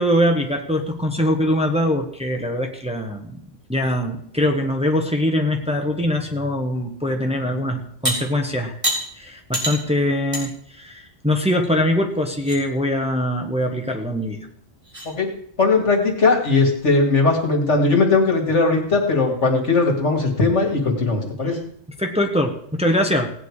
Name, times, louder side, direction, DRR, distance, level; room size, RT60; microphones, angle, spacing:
voice 1, 0.0-3.4 3.7-8.8 9.1-14.4 22.0-23.3, equal, 5° right, 2 dB, 1.3 m, -22 dB
sound 1, 8.0-8.2 8.8-9.0 9.5-9.8 10.3-10.4 10.9-11.0 11.6-11.7 12.1-12.6 14.2-14.3 14.8-15.1, equal, 25° right, 3.9 m, -25 dB
voice 2, 15.6-21.6, left 3 dB, 75° left, 2 dB, 2.6 m, -19 dB
17.0 x 9.2 x 5.0 m, 0.65 s
omnidirectional pair, 1.2 m